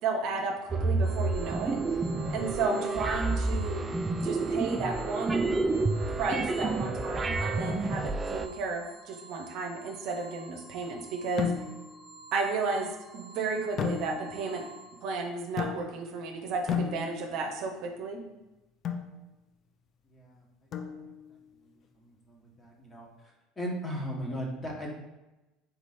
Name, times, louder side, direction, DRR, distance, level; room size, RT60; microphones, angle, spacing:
voice 1, 0.0-2.0 2.3-3.8 4.1-5.5 6.1-11.5 12.3-14.6 15.0-18.2, right 4 dB, 60° right, 2 dB, 0.7 m, -33 dB
sound 1, 0.7-8.5, right 3 dB, 25° right, 0.4 m, -29 dB
sound 2, 1.0-15.0, right 3 dB, 45° right, 1.1 m, -51 dB
sound 3, 11.4-12.0 13.8-14.5 15.6-16.2 16.7-17.5 18.8-19.2 20.7-21.3, left 7 dB, 50° left, 0.5 m, -33 dB
voice 2, 20.1-20.4 20.8-21.1 22.0-23.1 23.6-24.9, equal, 25° left, -2 dB, 1.5 m, -37 dB
3.9 x 3.0 x 4.2 m, 1.0 s
hypercardioid pair, 70°, 0 cm